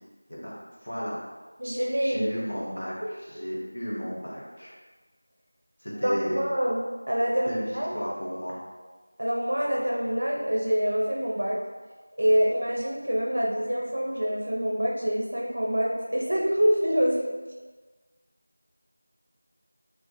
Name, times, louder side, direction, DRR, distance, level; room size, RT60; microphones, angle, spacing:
voice 1, 0.8-1.2 2.0-4.7 5.8-6.5 7.5-8.6, equal, 50° left, -7 dB, 0.9 m, -34 dB
voice 2, 1.6-2.3 6.0-8.0 9.2-11.6 12.2-17.2, equal, 55° right, -2 dB, 0.5 m, -26 dB
2.3 x 2.0 x 3.8 m, 1.3 s
figure-of-eight pair, 175°, 0 cm